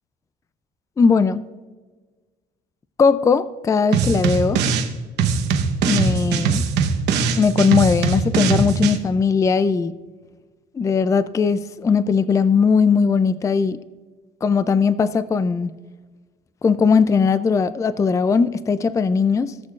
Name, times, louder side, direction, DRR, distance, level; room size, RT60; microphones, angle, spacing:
voice 1, 1.0-1.4 3.0-4.6 5.8-6.6 7.4-9.9 10.8-13.8 14.4-15.7 16.6-19.5, left 5 dB, 20° left, 15 dB, 0.3 m, -19 dB
sound 1, 3.9-4.9 5.2-9.0, right 5 dB, 85° right, 1.0 m, -21 dB
18.5 x 6.5 x 2.4 m, 1.3 s
cardioid pair, 110°, 17 cm